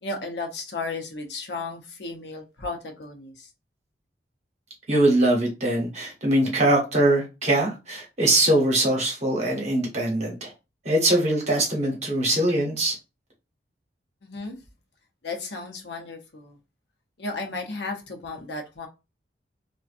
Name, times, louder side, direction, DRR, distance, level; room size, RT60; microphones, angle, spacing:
voice 1, 0.0-3.5 14.2-14.6 15.2-16.6 17.2-18.9, left 3 dB, 75° left, 0.7 m, -34 dB
voice 2, 4.9-10.5 10.8-12.9, right 1 dB, 40° right, 0.9 m, -22 dB
2.5 x 2.2 x 2.4 m
head